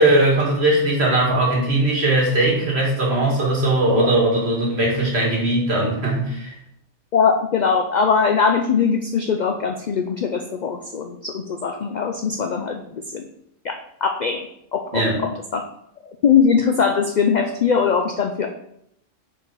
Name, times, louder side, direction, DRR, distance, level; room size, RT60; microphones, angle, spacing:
voice 1, 0.0-6.5 14.9-15.2, right 1 dB, 60° right, -2 dB, 1.9 m, -19 dB
voice 2, 7.1-12.8 13.1-13.3 13.6-14.5 14.7-15.0 15.5-15.6 16.2-18.5, left 6 dB, 60° left, 5 dB, 0.4 m, -20 dB
5.7 x 4.6 x 3.8 m, 0.76 s
omnidirectional pair, 1.2 m